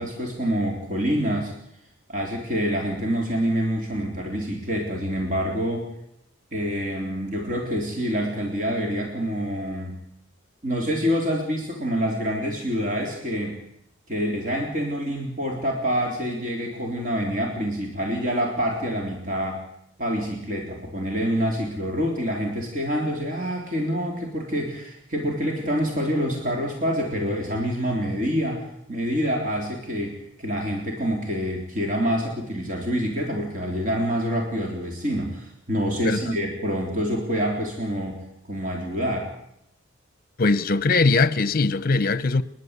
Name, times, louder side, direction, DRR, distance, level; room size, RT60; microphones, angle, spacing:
voice 1, 0.0-1.5 2.1-5.9 6.5-9.9 10.6-13.6 14.1-19.6 20.0-39.3, equal, 40° right, 3.8 m, -26 dB
voice 2, 40.4-42.4, left 3 dB, 45° left, 0.8 m, -20 dB
29.5 x 11.5 x 8.3 m
head